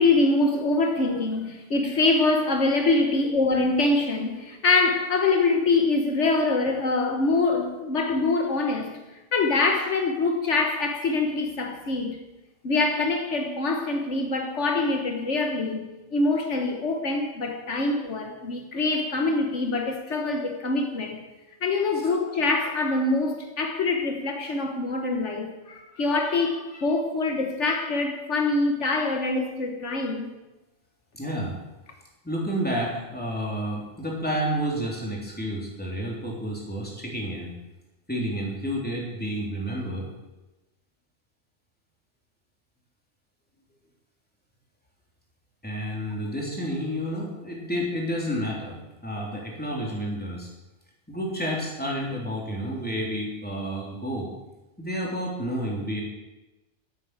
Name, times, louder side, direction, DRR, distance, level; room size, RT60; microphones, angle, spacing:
voice 1, 0.0-8.9 9.3-12.2 12.6-21.2 21.6-30.3, left 3 dB, 75° left, 1.6 m, -24 dB
voice 2, 31.1-31.6 32.2-37.5 38.1-40.1 45.6-50.5 51.1-54.3 54.8-56.0, equal, 10° left, 3.3 m, -30 dB
11.0 x 8.1 x 8.9 m
omnidirectional pair, 1.2 m